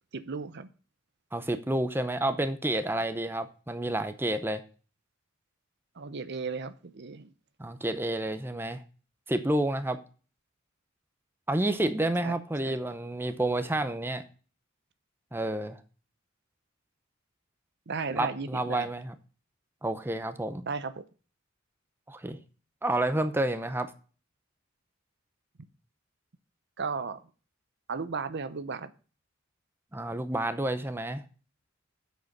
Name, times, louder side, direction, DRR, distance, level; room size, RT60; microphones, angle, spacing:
voice 1, 0.1-0.7 5.9-7.3 12.2-12.3 12.6-12.8 17.9-18.9 20.7-21.0 26.8-27.3 27.9-28.9, right 5 dB, 55° right, 13 dB, 0.7 m, -35 dB
voice 2, 1.3-4.6 7.6-8.8 9.3-10.0 11.5-14.2 15.3-15.8 18.1-19.1 19.8-20.7 22.1-22.4 22.8-23.9 29.9-31.2, right 1 dB, 10° right, 10 dB, 0.7 m, -29 dB
7.8 x 6.8 x 5.3 m, 0.37 s
head